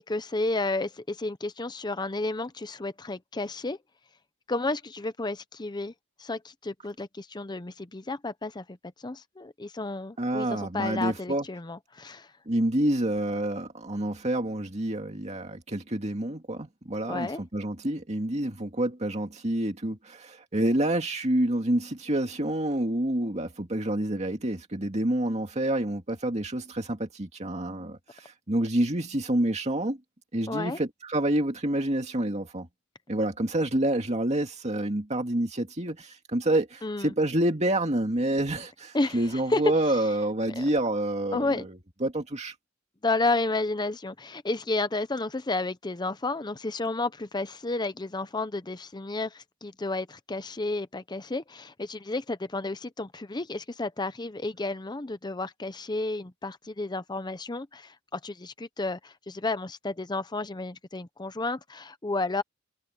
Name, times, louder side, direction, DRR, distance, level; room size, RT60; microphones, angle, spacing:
voice 1, 0.0-3.8 4.5-5.9 6.2-8.8 9.0-12.3 17.1-17.4 30.5-30.8 36.8-37.1 38.9-39.2 39.5-39.6 40.6-40.7 41.3-41.7 43.0-62.4, left 2 dB, 20° left, 0.7 m, -31 dB
voice 2, 10.2-11.5 12.5-30.0 30.3-32.7 33.1-42.5, right 1 dB, 30° right, 2.2 m, -28 dB
head